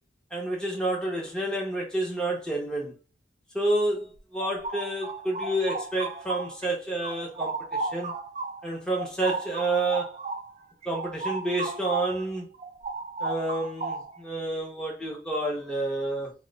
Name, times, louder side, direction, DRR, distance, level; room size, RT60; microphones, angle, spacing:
voice 1, 0.3-2.9 3.5-8.1 8.6-10.1 10.9-12.5 13.2-16.3, right 1 dB, 5° left, 0.7 m, -29 dB
sound 1, 4.2-6.7 7.0-12.2 12.5-14.3, right 3 dB, 35° right, 0.4 m, -34 dB
2.8 x 2.1 x 3.9 m
head